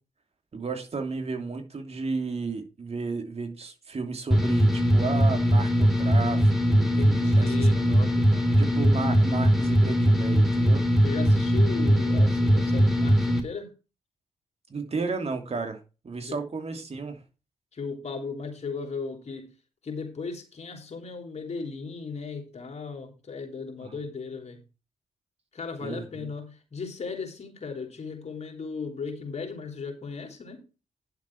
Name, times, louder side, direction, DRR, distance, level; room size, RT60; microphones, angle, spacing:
voice 1, 0.5-7.9 8.6-10.8 14.7-15.8 16.0-17.2 23.8-24.0 25.8-26.3, right 4 dB, 45° right, 3.0 m, -33 dB
sound 1, 4.3-13.4, equal, ahead, 3.3 m, -21 dB
voice 2, 6.9-8.7 11.0-13.7 16.3-16.4 17.7-19.5 19.8-24.6 25.5-30.6, left 4 dB, 50° left, 3.4 m, -36 dB
10.5 x 7.2 x 4.7 m
hypercardioid pair, 45°, 14 cm